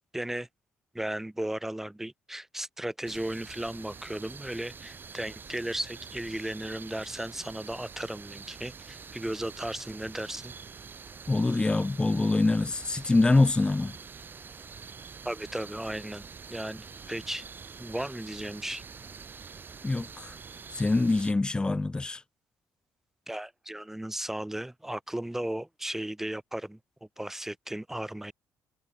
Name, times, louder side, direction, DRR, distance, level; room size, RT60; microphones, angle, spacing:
voice 1, 0.1-0.5 0.9-10.5 15.2-17.4 17.8-18.8 23.3-28.3, right 1 dB, 5° right, 4.4 m, -35 dB
sound 1, 3.1-21.3, right 5 dB, 30° right, 3.5 m, -46 dB
voice 2, 11.3-14.0 19.8-20.4 20.7-22.2, left 2 dB, 15° left, 0.7 m, -25 dB
cardioid pair, 135°, 7 cm